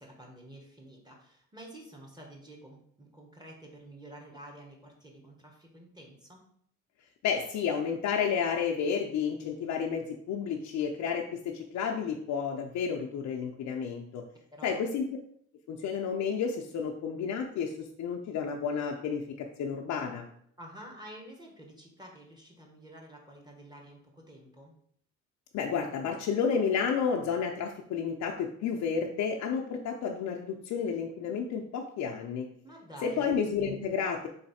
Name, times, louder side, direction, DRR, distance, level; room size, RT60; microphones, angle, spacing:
voice 1, 0.0-6.4 14.5-14.8 20.6-24.7 32.6-33.4, right 1 dB, 15° right, 0 dB, 1.2 m, -49 dB
voice 2, 7.2-14.2 14.6-15.1 15.7-20.2 25.5-32.5 33.0-34.3, left 6 dB, 70° left, 1 dB, 0.5 m, -31 dB
4.0 x 3.2 x 4.1 m, 0.65 s
cardioid pair, 90°, 30 cm